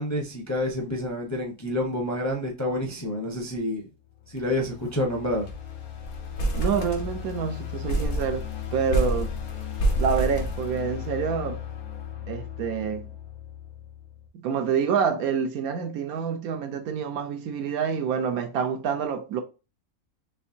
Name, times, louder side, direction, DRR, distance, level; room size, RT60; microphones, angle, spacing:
voice 1, 0.0-3.9 4.3-5.5, left 1 dB, 15° left, 0.6 m, -28 dB
sound 1, 4.0-14.3, left 10 dB, 75° left, 1.5 m, -37 dB
sound 2, 4.4-4.6 4.9-5.0 5.3-5.7 6.0-7.4 7.9-11.2, right 1 dB, 55° left, 1.2 m, -28 dB
voice 2, 6.6-8.5 8.7-9.3 10.0-11.6 12.3-13.1 14.3-19.4, right 7 dB, 80° right, 1.1 m, -27 dB
4.5 x 3.1 x 2.7 m
omnidirectional pair, 1.6 m